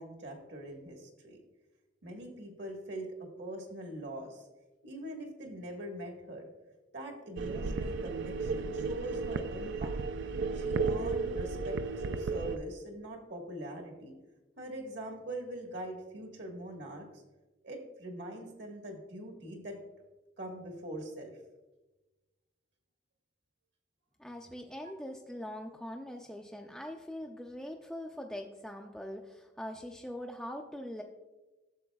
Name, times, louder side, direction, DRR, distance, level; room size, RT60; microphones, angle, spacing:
voice 1, 0.0-1.4 2.0-4.5 4.8-6.5 6.9-10.0 10.5-11.8 12.0-14.1 14.6-17.1 17.6-19.8 20.4-21.4, right 1 dB, 65° right, 2 dB, 1.4 m, -43 dB
sound 1, 7.4-12.6, right 4 dB, 85° right, 0.4 m, -34 dB
voice 2, 24.2-31.0, left 1 dB, ahead, 1 dB, 0.4 m, -42 dB
11.5 x 6.9 x 2.3 m, 1.1 s
head